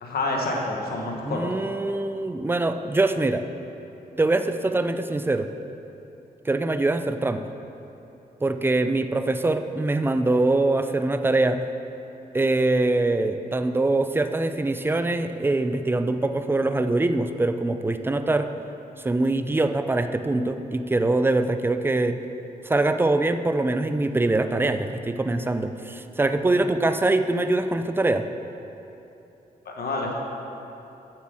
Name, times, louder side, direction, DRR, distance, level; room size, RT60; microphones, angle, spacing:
voice 1, 0.0-1.6 29.6-30.2, left 2 dB, 70° left, -1 dB, 1.4 m, -28 dB
voice 2, 1.2-3.4 4.2-5.5 6.5-7.4 8.4-11.6 12.3-18.5 19.0-22.2 22.6-28.3, right 2 dB, 15° right, 9 dB, 0.5 m, -23 dB
7.5 x 7.3 x 6.3 m, 3.0 s
cardioid pair, 80°, 16 cm